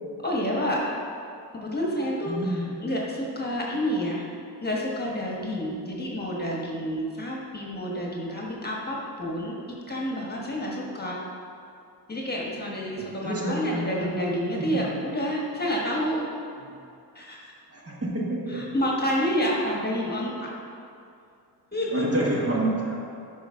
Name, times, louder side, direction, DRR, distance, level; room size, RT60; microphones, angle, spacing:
voice 1, 0.2-0.8 1.5-4.2 4.6-9.5 9.9-11.2 12.1-16.3 17.1-17.4 18.5-20.5 21.7-22.0, equal, 25° left, -3 dB, 1.3 m, -29 dB
voice 2, 2.2-2.6 13.0-14.1 14.6-14.8 16.6-16.7 17.7-18.7 21.9-22.9, right 1 dB, 35° right, -4 dB, 1.5 m, -28 dB
9.6 x 5.3 x 3.6 m, 2.5 s
cardioid pair, 95°, 41 cm